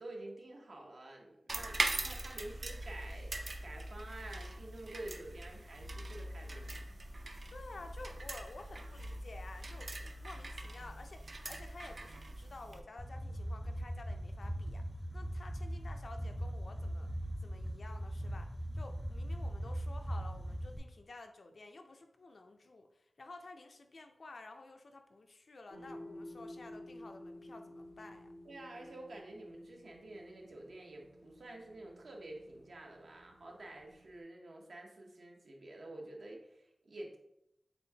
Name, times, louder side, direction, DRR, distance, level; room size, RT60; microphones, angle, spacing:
voice 1, 0.0-3.3 3.6-6.8 28.5-37.2, right 1 dB, 75° right, 0 dB, 0.8 m, -49 dB
sound 1, 1.5-12.8, right 2 dB, 60° right, 0.4 m, -42 dB
voice 2, 7.5-17.1 17.4-28.3, left 2 dB, 65° left, 5 dB, 0.4 m, -52 dB
sound 2, 13.0-20.8, equal, 5° right, 0.5 m, -40 dB
sound 3, 25.7-34.2, left 1 dB, 85° left, 0.9 m, -53 dB
4.2 x 3.4 x 2.8 m, 0.82 s
wide cardioid pair, 70°, 0 cm